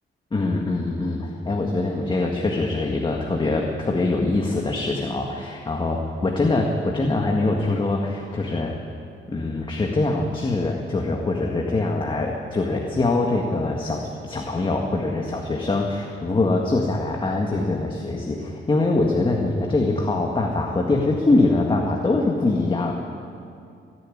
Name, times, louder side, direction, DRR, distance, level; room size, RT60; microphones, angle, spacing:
voice 1, 0.3-8.7 9.3-22.9, left 2 dB, 25° left, 0 dB, 1.8 m, -23 dB
29.5 x 11.0 x 9.9 m, 2.5 s
wide cardioid pair, 145°, 20 cm